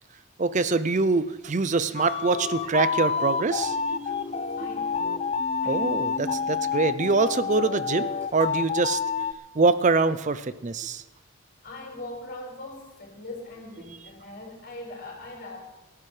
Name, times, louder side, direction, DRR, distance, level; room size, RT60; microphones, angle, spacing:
voice 1, 0.4-4.5 5.7-9.0 9.5-11.0, right 3 dB, 35° right, 14 dB, 0.5 m, -24 dB
sound 1, 2.0-9.3, left 5 dB, 30° left, 0.4 m, -28 dB
voice 2, 4.6-5.3 5.6-6.1 11.6-15.6, left 2 dB, 50° left, 0 dB, 4.9 m, -41 dB
25.0 x 12.0 x 3.3 m, 1.1 s
head